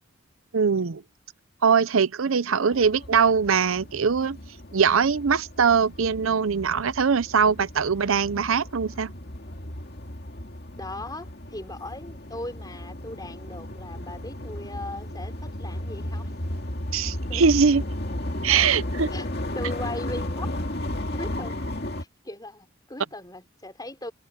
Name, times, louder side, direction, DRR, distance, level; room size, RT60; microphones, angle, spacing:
voice 1, 0.5-1.0 1.6-4.4 4.7-9.1 16.9-17.8 18.4-19.1, right 6 dB, 75° right, 0.6 m, -22 dB
voice 2, 2.5-2.9 10.8-16.4 17.3-17.5 19.1-19.3 19.5-20.6 21.1-24.1, left 2 dB, 20° left, 4.3 m, -39 dB
sound 1, 2.7-22.0, left 1 dB, 50° left, 2.4 m, -34 dB
head